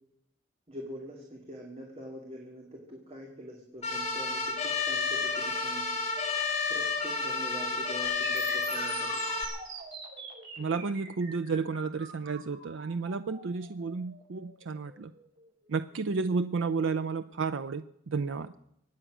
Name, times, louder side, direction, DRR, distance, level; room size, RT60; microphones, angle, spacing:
voice 1, 0.7-5.9 6.7-9.4, equal, 35° right, 0 dB, 2.3 m, -44 dB
sound 1, 3.8-9.4, left 4 dB, 35° left, 2.9 m, -31 dB
sound 2, 8.0-16.0, right 5 dB, 70° right, 6.5 m, -44 dB
voice 2, 10.6-15.1 15.7-18.5, right 4 dB, 85° right, 10 dB, 0.5 m, -32 dB
24.0 x 9.1 x 6.2 m, 0.78 s
head